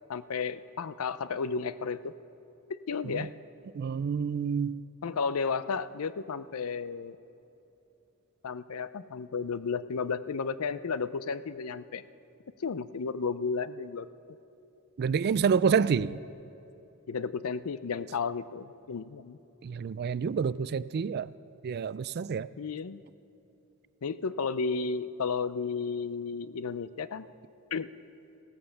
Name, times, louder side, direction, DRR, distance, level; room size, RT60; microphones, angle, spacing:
voice 1, 0.1-2.1 2.7-3.3 5.0-7.2 8.4-12.0 12.6-14.1 17.1-19.4 22.6-23.0 24.0-27.3 27.7-27.9, left 5 dB, 80° left, 15 dB, 0.5 m, -33 dB
voice 2, 3.7-4.8 15.0-16.2 19.6-21.3 21.6-22.5, right 6 dB, 50° right, 18 dB, 0.3 m, -28 dB
16.0 x 13.0 x 7.0 m, 2.9 s
head